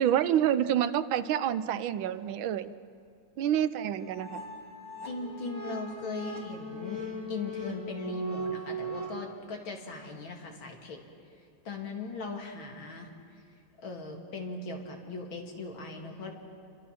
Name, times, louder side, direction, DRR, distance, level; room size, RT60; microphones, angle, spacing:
voice 1, 0.0-2.7 3.4-4.4, right 10 dB, 80° right, 13 dB, 1.5 m, -27 dB
sound 1, 3.7-9.1, right 1 dB, 45° right, 3.7 m, -39 dB
voice 2, 5.1-7.0 7.3-11.0 11.6-13.1 13.8-16.3, left 3 dB, 85° left, 2 dB, 3.1 m, -39 dB
28.5 x 23.0 x 5.9 m, 2.4 s
omnidirectional pair, 2.1 m